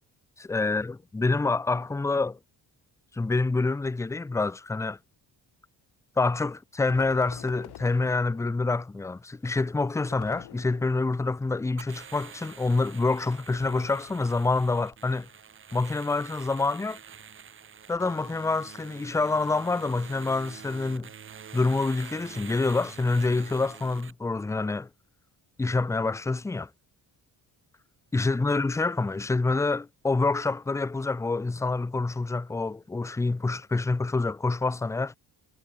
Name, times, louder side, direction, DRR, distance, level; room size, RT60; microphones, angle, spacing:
voice 1, 0.4-2.4 3.1-5.0 6.2-15.3 15.7-17.0 17.9-21.1 21.5-24.9 25.6-26.7 28.1-35.2, left 3 dB, 10° left, 0.3 m, -27 dB
sound 1, 6.9-8.8 10.1-11.3 13.5-14.5, left 13 dB, 70° left, 1.9 m, -47 dB
sound 2, 11.8-24.1, right 7 dB, 30° right, 0.9 m, -47 dB
wide cardioid pair, 180°, 40 cm